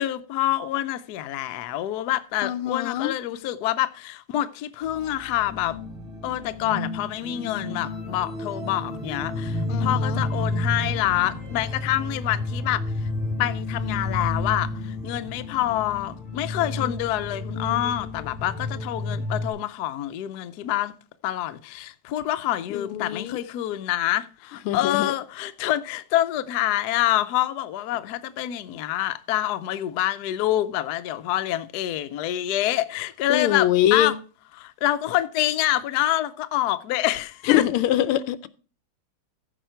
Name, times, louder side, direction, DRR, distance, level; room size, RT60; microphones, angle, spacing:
voice 1, 0.0-5.8 6.2-13.1 13.4-20.9 21.2-34.1 34.6-37.6, left 13 dB, 75° left, 0.9 m, -26 dB
voice 2, 2.4-3.1 9.7-10.2 22.7-23.4 24.7-25.1 33.3-34.2 37.4-38.5, left 12 dB, 90° left, 1.6 m, -23 dB
sound 1, 4.8-19.5, left 2 dB, 30° right, 1.8 m, -31 dB
15.0 x 5.0 x 4.4 m
omnidirectional pair, 2.4 m